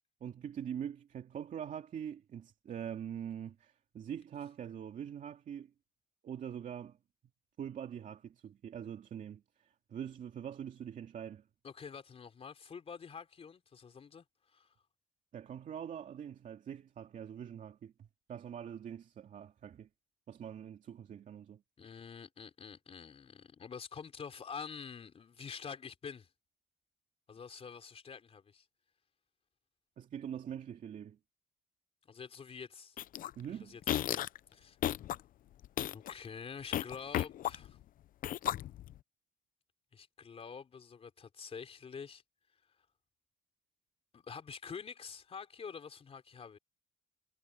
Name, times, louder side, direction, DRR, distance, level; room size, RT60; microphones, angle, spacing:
voice 1, 0.2-5.7 6.2-7.0 7.6-11.4 15.3-19.9 20.3-21.6 30.0-31.2 33.4-33.8, right 9 dB, 50° right, 2.6 m, -44 dB
voice 2, 11.6-14.7 21.8-26.3 27.3-28.7 32.1-33.0 33.4-34.8 35.9-37.8 39.9-42.2 42.6-42.8 44.1-46.6, left 6 dB, 35° left, 4.0 m, -47 dB
sound 1, 33.0-33.3 33.8-34.4 34.8-35.2 35.6-36.1 36.7-37.8 38.2-39.0, left 12 dB, 55° left, 0.6 m, -34 dB
cardioid pair, 110°, 17 cm